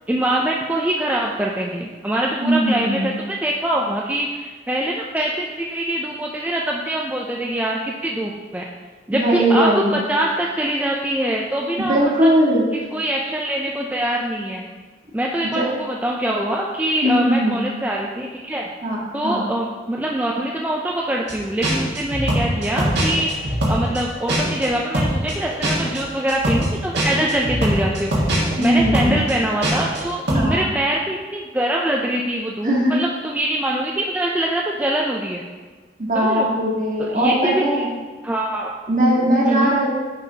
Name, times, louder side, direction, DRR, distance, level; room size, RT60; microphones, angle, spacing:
voice 1, 0.1-8.6 9.1-12.3 12.7-14.7 15.1-18.7 19.1-35.4 36.1-36.5 37.0-37.9 38.2-38.7 39.5-39.7, right 1 dB, 10° right, -2 dB, 0.3 m, -24 dB
voice 2, 2.4-3.2 9.2-9.9 11.9-12.7 17.0-17.6 18.8-19.4 28.6-29.2 30.3-30.6 32.6-32.9 36.1-37.9 38.9-39.9, equal, 45° right, -5 dB, 1.6 m, -19 dB
sound 1, 21.3-21.4 21.6-24.7 24.9-30.0 30.3-30.5, right 1 dB, 70° right, 1.7 m, -21 dB
9.7 x 5.5 x 2.8 m, 1.4 s
head